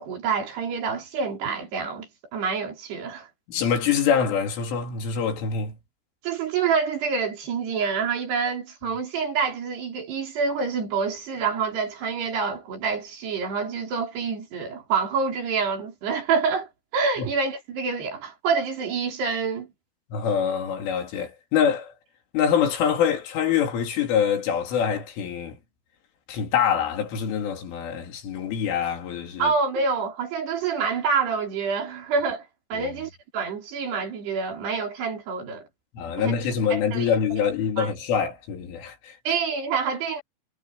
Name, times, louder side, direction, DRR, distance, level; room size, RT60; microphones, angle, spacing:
voice 1, 0.0-3.3 6.2-19.7 29.4-35.7 36.2-36.3 36.7-37.4 37.8-37.9 39.3-40.2, right 5 dB, 60° right, 6.1 m, -27 dB
voice 2, 3.5-5.8 17.2-17.3 20.1-21.9 22.3-25.6 26.3-29.5 32.7-32.9 36.0-39.1, left 7 dB, 90° left, 5.8 m, -25 dB
omnidirectional pair, 5.5 m